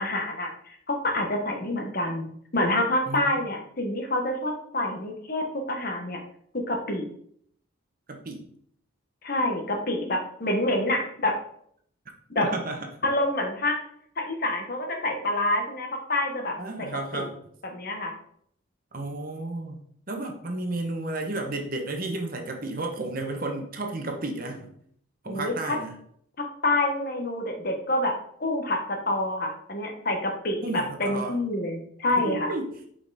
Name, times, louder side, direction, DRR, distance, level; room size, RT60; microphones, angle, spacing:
voice 1, 0.0-2.3 2.5-6.2 6.5-7.1 9.2-11.4 12.3-12.5 13.0-13.8 14.2-16.9 17.1-17.2 17.7-18.1 25.3-25.8 26.4-28.1 28.4-32.5, left 1 dB, 45° left, 3 dB, 1.2 m, -27 dB
voice 2, 3.1-3.4 8.1-8.5 12.4-12.9 16.6-17.4 18.9-24.7 25.2-26.0 30.6-31.4 32.1-32.8, right 2 dB, 45° right, 3 dB, 1.0 m, -32 dB
5.5 x 5.1 x 4.0 m, 0.65 s
head